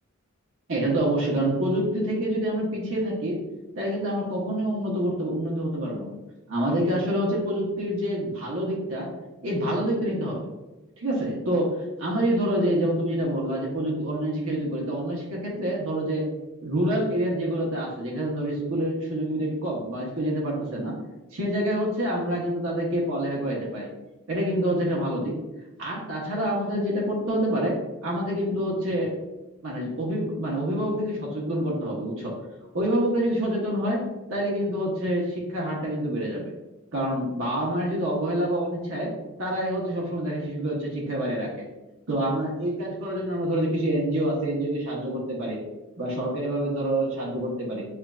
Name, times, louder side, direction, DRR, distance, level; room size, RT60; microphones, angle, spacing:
voice 1, 0.7-3.4 3.8-6.1 6.5-9.1 9.4-10.5 11.0-11.7 12.0-16.2 16.6-20.9 21.3-23.9 24.3-25.3 25.8-27.7 28.0-29.1 29.6-32.3 32.7-34.0 34.3-36.5 36.9-39.1 39.4-41.7 42.1-45.6 46.0-47.8, right 1 dB, 85° right, -4 dB, 1.1 m, -27 dB
6.9 x 2.6 x 2.4 m, 1.0 s
head